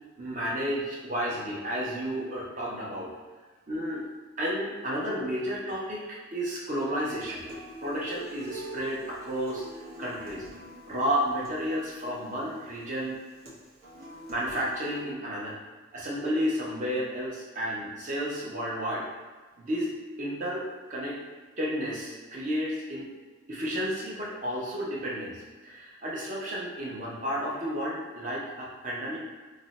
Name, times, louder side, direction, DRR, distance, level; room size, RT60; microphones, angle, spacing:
voice 1, 0.2-3.1 3.7-4.1 4.4-7.4 7.8-10.4 10.9-13.2 14.3-15.5 15.9-19.0 19.6-21.2 21.6-23.1 23.5-25.4 25.6-29.2, equal, 35° right, -5 dB, 0.7 m, -32 dB
Human voice / Acoustic guitar, 7.0-15.0, right 1 dB, 70° right, 0.8 m, -45 dB
2.5 x 2.1 x 3.9 m, 1.3 s
head